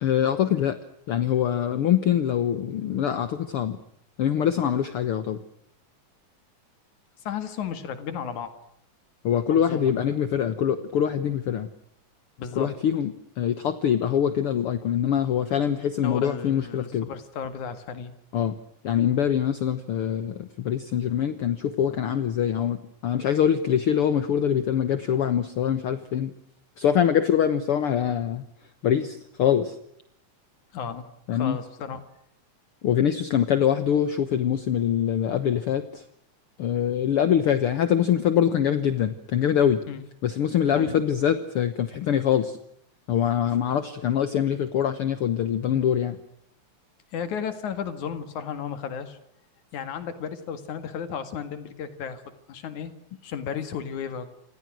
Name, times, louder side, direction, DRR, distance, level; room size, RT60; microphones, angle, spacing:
voice 1, 0.0-0.8 1.1-3.8 4.2-5.4 9.2-11.7 12.6-17.1 18.3-18.6 18.8-26.3 26.8-28.4 28.8-29.8 31.3-31.6 32.8-36.0 36.6-39.8 40.2-42.6 43.1-46.2, left 9 dB, 55° left, 12 dB, 1.9 m, -24 dB
voice 2, 7.3-8.5 9.5-9.9 12.4-12.7 16.0-18.1 30.7-31.1 31.3-32.0 39.9-40.0 40.7-41.0 47.1-49.2 49.7-52.2 52.5-52.9 53.2-54.3, left 7 dB, 90° left, 11 dB, 3.4 m, -34 dB
29.5 x 27.0 x 6.3 m, 0.70 s
omnidirectional pair, 3.3 m